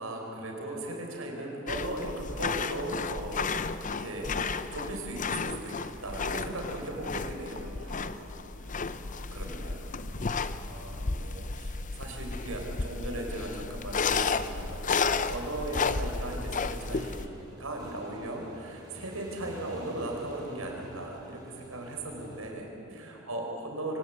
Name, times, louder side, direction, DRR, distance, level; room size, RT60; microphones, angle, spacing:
voice 1, 0.0-3.5 4.0-7.6 9.3-9.9 10.6-24.0, right 1 dB, 90° right, 1 dB, 5.0 m, -38 dB
sound 1, 1.7-17.3, left 4 dB, 40° left, 0.7 m, -33 dB
voice 2, 6.4-9.0 10.0-10.3 22.0-22.4 22.8-23.2, right 1 dB, 65° right, -4 dB, 2.6 m, -51 dB
Motorcycle / Engine, 15.0-22.5, equal, 20° right, 6.0 m, -52 dB
24.5 x 18.5 x 8.4 m, 2.9 s
head